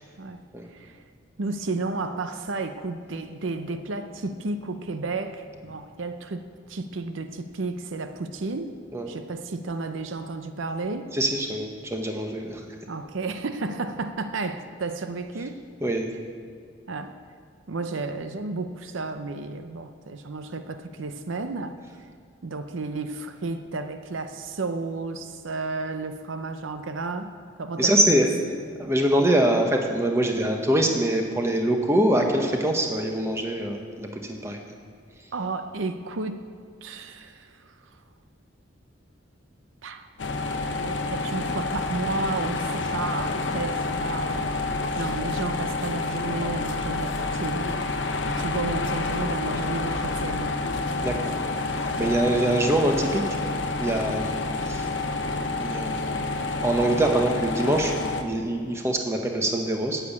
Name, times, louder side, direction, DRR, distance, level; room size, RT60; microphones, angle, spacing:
voice 1, 0.7-1.0 1.4-8.8 9.1-11.1 12.9-15.6 16.9-17.2 17.7-21.8 22.4-27.3 27.6-28.3 35.3-36.4 36.8-37.7 39.8-40.1 40.8-44.6 45.0-47.7 48.2-50.6 52.0-52.5, right 3 dB, 75° right, 8 dB, 0.6 m, -32 dB
voice 2, 11.1-12.6 15.8-16.1 27.8-28.3 28.8-34.6 51.0-51.4 52.0-53.2 53.7-54.3 54.6-54.9 55.6-56.2 56.6-60.0, right 1 dB, 15° right, 3 dB, 1.0 m, -24 dB
sound 1, 40.2-58.2, left 3 dB, 65° left, 0.8 m, -28 dB
9.5 x 8.9 x 8.5 m, 2.2 s
head